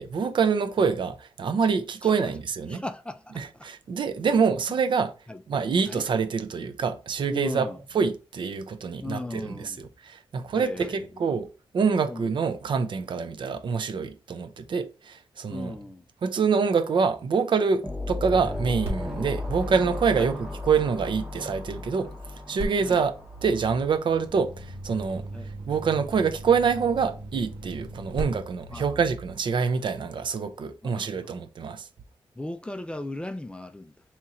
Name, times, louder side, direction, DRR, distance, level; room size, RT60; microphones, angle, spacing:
voice 1, 0.0-2.8 3.4-5.1 5.5-7.7 7.9-11.5 11.7-15.8 16.2-22.1 22.5-23.1 23.4-25.2 25.7-31.9, right 5 dB, 55° right, 0.5 m, -26 dB
voice 2, 2.0-2.3 2.7-3.7 4.2-4.4 5.3-5.4 5.9-6.0 7.3-7.8 9.0-9.9 10.5-11.3 12.1-12.3 15.5-16.0 20.1-20.3 22.8-23.0 25.3-25.5 28.7-28.9 30.8-31.4 32.4-33.9, left 1 dB, 10° left, 0.3 m, -37 dB
sound 1, 17.8-24.3, left 2 dB, 5° right, 0.9 m, -35 dB
sound 2, 18.2-21.4 22.6-29.5, right 1 dB, 90° right, 1.2 m, -39 dB
2.9 x 2.8 x 3.6 m
cardioid pair, 90°, 10 cm